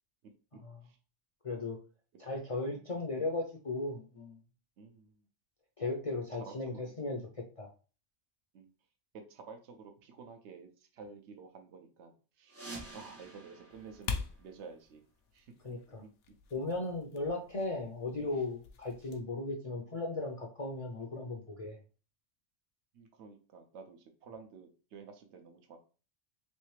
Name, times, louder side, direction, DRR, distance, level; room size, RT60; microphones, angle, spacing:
voice 1, 1.4-1.8 2.2-4.4 5.8-7.7 15.6-16.0 16.5-21.8, left 2 dB, 40° left, 0 dB, 0.5 m, -37 dB
voice 2, 4.8-5.2 6.3-6.9 8.5-8.7 9.1-12.6 12.9-15.0 15.3-15.5 16.0-16.1 22.9-25.8, right 5 dB, 75° right, 5 dB, 1.0 m, -51 dB
sound 1, 12.5-15.1, right 2 dB, 20° right, 0.4 m, -49 dB
sound 2, 13.7-19.2, left 5 dB, 85° left, 0.9 m, -45 dB
3.2 x 3.2 x 3.1 m, 0.36 s
omnidirectional pair, 1.2 m